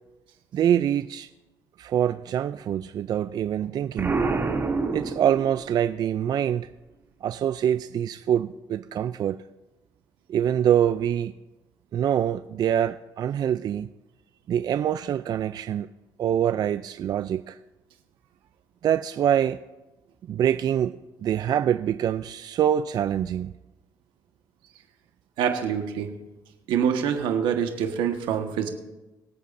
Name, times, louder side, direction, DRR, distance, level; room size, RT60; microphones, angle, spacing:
voice 1, 0.5-1.3 1.8-4.2 4.9-6.7 7.2-9.4 10.3-11.3 11.9-13.9 14.5-15.9 16.2-17.6 18.8-19.6 20.3-21.0 21.2-23.5, right 10 dB, 55° right, 0.4 m, -25 dB
Explosion, 4.0-5.8, right 4 dB, 30° right, 2.7 m, -27 dB
voice 2, 25.4-26.1 26.7-28.7, right 8 dB, 90° right, 1.4 m, -25 dB
24.0 x 8.3 x 2.6 m
cardioid pair, 90°, 8 cm